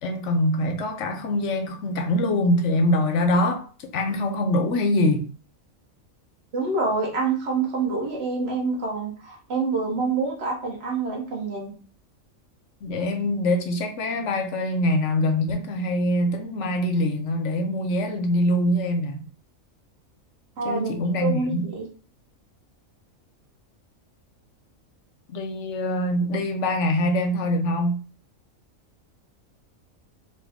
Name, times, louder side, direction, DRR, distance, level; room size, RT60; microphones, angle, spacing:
voice 1, 0.0-5.3 12.8-19.3 20.6-21.7 25.3-28.0, left 1 dB, 65° left, 0.9 m, -24 dB
voice 2, 6.5-11.7 20.6-20.9 21.2-21.9, right 4 dB, 50° right, 1.4 m, -26 dB
4.1 x 2.5 x 3.5 m
omnidirectional pair, 1.4 m